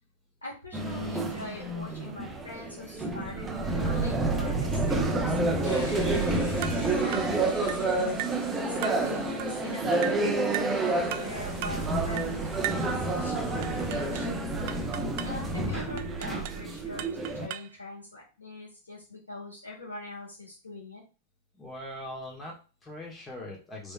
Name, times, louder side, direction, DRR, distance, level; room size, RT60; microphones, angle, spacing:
voice 1, 0.4-21.0, left 2 dB, 80° left, -7 dB, 1.7 m, -43 dB
sound 1, 0.7-17.5, right 2 dB, 15° right, 0.7 m, -29 dB
sound 2, 5.6-14.1, left 3 dB, 60° left, 2.4 m, -47 dB
sound 3, 6.6-6.9 7.1-7.4 7.7-7.9 8.2-8.4 8.8-9.1 9.4-9.6 10.0-10.2 10.5-10.8 11.1-11.3 11.6-11.8 12.2-12.4 12.6-12.9 13.6-14.3 14.7-15.4 16.0-16.6 17.0-17.8, right 13 dB, 45° right, 0.3 m, -37 dB
voice 2, 15.4-15.9 21.6-23.9, left 1 dB, 15° left, -1 dB, 1.6 m, -41 dB
4.9 x 3.5 x 2.4 m, 0.33 s
figure-of-eight pair, 95°, 0 cm